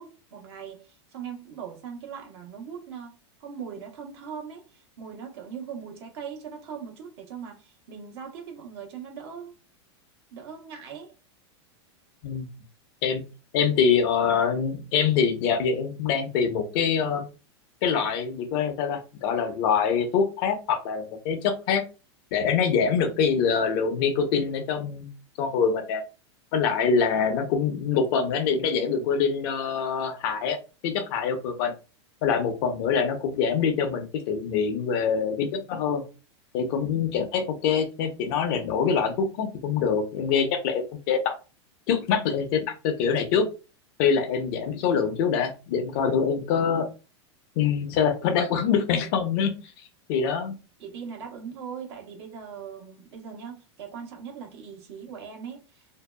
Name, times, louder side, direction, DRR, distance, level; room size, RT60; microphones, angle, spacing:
voice 1, 0.0-9.5 10.3-11.1 50.8-55.9, right 7 dB, 65° right, 1.0 m, -40 dB
voice 2, 13.5-17.3 17.8-21.8 22.3-25.1 25.4-26.0 26.5-30.6 30.8-31.7 32.2-36.0 36.5-41.3 41.9-43.5 44.0-46.9 47.6-49.6 50.1-50.6, left 6 dB, 55° left, 0.7 m, -24 dB
2.7 x 2.2 x 2.2 m
hypercardioid pair, 125°, 15 cm